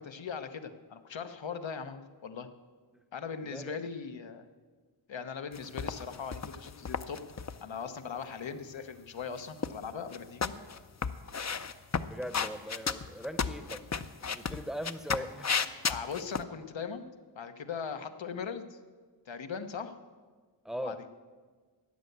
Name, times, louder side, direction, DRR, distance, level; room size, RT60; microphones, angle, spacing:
voice 1, 0.0-2.5 3.1-4.5 5.1-7.2 7.6-10.5 15.9-17.1 17.3-18.8 19.3-19.9 20.8-21.0, left 6 dB, 80° left, 8 dB, 1.0 m, -39 dB
voice 2, 3.4-3.7 12.0-15.7 20.6-21.2, equal, ahead, 11 dB, 0.8 m, -40 dB
sound 1, 5.5-7.6 9.2-9.9 10.1-16.4, left 6 dB, 40° left, 0.6 m, -33 dB
13.5 x 9.2 x 7.9 m, 1.5 s
wide cardioid pair, 95°, 45 cm